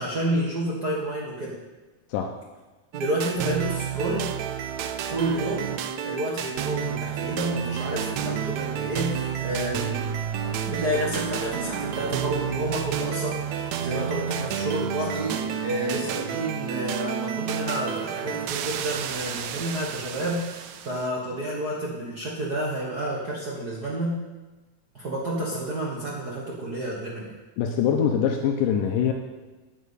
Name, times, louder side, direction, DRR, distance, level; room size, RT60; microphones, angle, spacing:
voice 1, 0.0-1.6 2.9-4.3 5.1-5.7 6.0-10.1 10.6-24.2 24.9-27.3, right 1 dB, 40° right, -3 dB, 1.4 m, -30 dB
sound 1, 2.9-21.1, right 8 dB, 75° right, 1.7 m, -30 dB
voice 2, 27.6-29.1, left 8 dB, 85° left, 3 dB, 2.4 m, -23 dB
9.4 x 8.4 x 8.4 m, 1.2 s
omnidirectional pair, 3.8 m